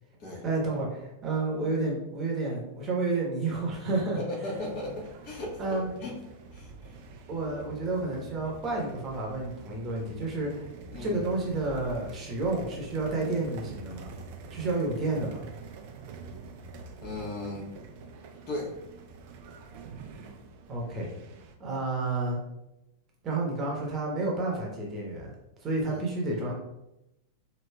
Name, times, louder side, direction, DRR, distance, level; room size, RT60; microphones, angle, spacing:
voice 1, 0.4-4.2 5.6-5.9 7.3-10.7 11.0-14.1 14.5-15.4 20.7-21.1 21.6-22.4 23.2-25.3 25.6-26.6, right 2 dB, 25° right, -2 dB, 1.0 m, -30 dB
voice 2, 4.1-6.2 6.5-7.0 10.9-11.1 17.0-17.7 18.5-18.7 25.8-26.0, left 2 dB, 40° left, -3 dB, 1.2 m, -37 dB
sound 1, 4.5-21.5, right 3 dB, 45° right, 0.4 m, -46 dB
4.5 x 2.7 x 2.2 m, 0.89 s
figure-of-eight pair, 90°, 0 cm